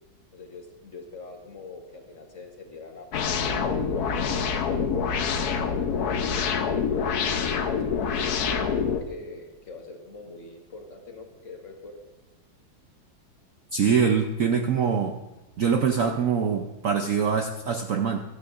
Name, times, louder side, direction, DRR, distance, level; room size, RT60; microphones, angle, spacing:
voice 1, 0.3-6.7 7.4-12.0, left 3 dB, 45° left, 2 dB, 1.4 m, -43 dB
sound 1, 3.1-9.0, left 6 dB, 60° left, 1.2 m, -26 dB
voice 2, 13.7-15.2 15.6-18.2, right 6 dB, 65° right, 4 dB, 0.8 m, -24 dB
15.5 x 13.0 x 2.5 m, 1.1 s
omnidirectional pair, 2.1 m